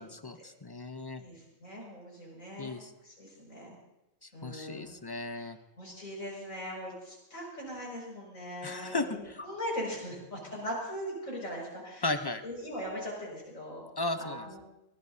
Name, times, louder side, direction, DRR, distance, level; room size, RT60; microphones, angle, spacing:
voice 1, 0.0-1.2 2.6-2.9 4.2-5.6 8.6-9.4 12.0-12.4 14.0-14.6, left 2 dB, 25° left, 8 dB, 0.5 m, -35 dB
voice 2, 1.1-2.8 3.0-3.8 4.3-4.9 5.2-5.4 5.8-12.1 12.4-13.8 14.2-14.6, equal, 75° left, -2 dB, 6.5 m, -40 dB
23.5 x 18.5 x 2.8 m, 0.93 s
omnidirectional pair, 1.4 m